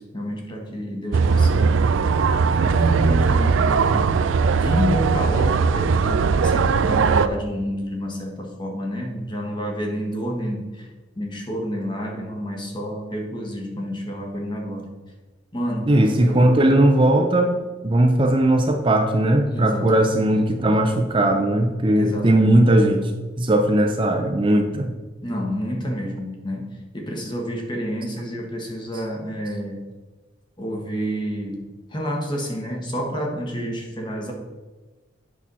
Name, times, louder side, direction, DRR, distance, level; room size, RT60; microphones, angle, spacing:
voice 1, 0.0-1.8 2.5-4.2 4.5-10.9 11.2-14.9 15.5-15.9 16.2-16.8 19.5-20.2 21.9-22.7 25.2-29.9 30.6-34.3, equal, 25° left, 1 dB, 1.4 m, -29 dB
sound 1, 1.1-7.3, right 5 dB, 90° right, 0.4 m, -19 dB
voice 2, 15.9-23.1 23.4-24.9, right 1 dB, 25° right, 4 dB, 0.6 m, -18 dB
8.4 x 5.9 x 4.0 m, 1.2 s
head